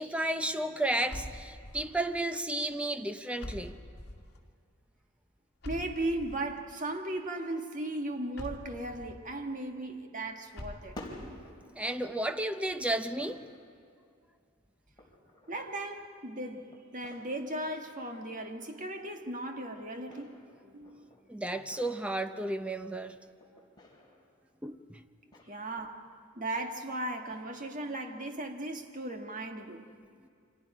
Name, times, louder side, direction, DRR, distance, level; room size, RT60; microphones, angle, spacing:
voice 1, 0.0-3.8 11.8-13.4 21.3-23.2 24.6-25.0, right 1 dB, 5° right, 0.7 m, -33 dB
sound 1, 1.1-2.1 3.4-4.4 5.6-6.6 8.4-9.2 10.6-11.4, left 1 dB, 55° left, 2.3 m, -44 dB
voice 2, 5.6-11.0 15.5-20.4 20.6-21.1 25.5-26.1 26.3-29.9, right 1 dB, 40° right, 1.6 m, -37 dB
sound 2, 9.3-9.9 10.4-12.4 12.7-13.9 15.0-16.2 16.7-18.7 19.7-22.4 22.8-24.4 25.3-25.9 26.3-26.4 27.3-27.8, left 1 dB, 20° left, 3.6 m, -53 dB
29.0 x 25.0 x 5.0 m
head